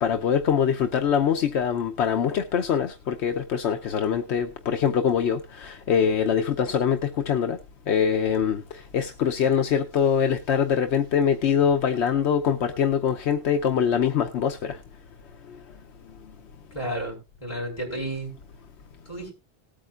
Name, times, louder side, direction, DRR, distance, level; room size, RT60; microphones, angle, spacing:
voice 1, 0.0-7.6 7.9-14.8 15.5-15.6, left 7 dB, 75° left, 1.0 m, -23 dB
voice 2, 16.7-18.3 19.1-19.3, right 1 dB, 30° left, 5.1 m, -32 dB
19.0 x 8.8 x 2.4 m
omnidirectional pair, 1.1 m